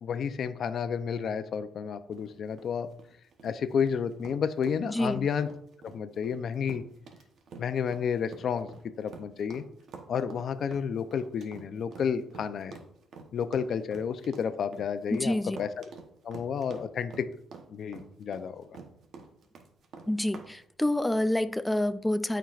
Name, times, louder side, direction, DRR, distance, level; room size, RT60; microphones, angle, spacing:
voice 1, 0.0-2.9 3.4-5.5 5.8-6.8 7.6-8.7 9.0-9.6 10.1-12.8 13.3-15.8 16.2-17.3 17.7-18.7, left 7 dB, 60° left, 0.6 m, -31 dB
sound 1, 2.1-20.5, right 5 dB, 65° right, 1.0 m, -48 dB
voice 2, 4.8-5.3 15.1-15.6 20.1-22.4, left 1 dB, 5° left, 0.3 m, -28 dB
13.0 x 4.5 x 2.5 m
cardioid pair, 90°, 0 cm